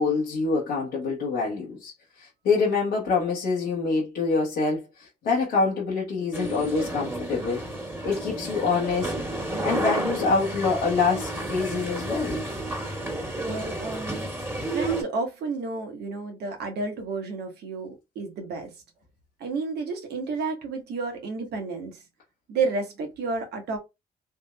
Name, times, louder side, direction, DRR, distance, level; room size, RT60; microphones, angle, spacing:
voice 1, 0.0-1.9 2.2-7.7 8.0-9.1 9.6-12.4, left 4 dB, 80° left, 1.1 m, -26 dB
sound 1, 6.3-15.0, right 1 dB, 15° right, 1.7 m, -31 dB
voice 2, 13.4-14.3 14.7-18.8 19.4-22.0 22.5-23.8, right 4 dB, 75° right, 1.2 m, -31 dB
3.5 x 2.8 x 2.2 m
supercardioid pair, 55°, 17 cm